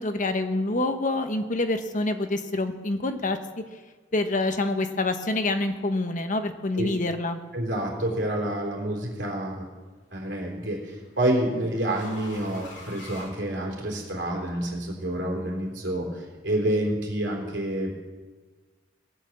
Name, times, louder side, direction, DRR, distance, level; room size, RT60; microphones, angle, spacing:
voice 1, 0.0-3.4 4.1-7.4, left 2 dB, 40° left, 7 dB, 1.0 m, -26 dB
voice 2, 7.5-9.7 10.1-18.0, right 1 dB, 65° right, -1 dB, 3.8 m, -28 dB
sound 1, 8.7-8.8 10.2-14.1, left 2 dB, 65° left, 3.5 m, -47 dB
18.0 x 9.1 x 7.4 m, 1.4 s
head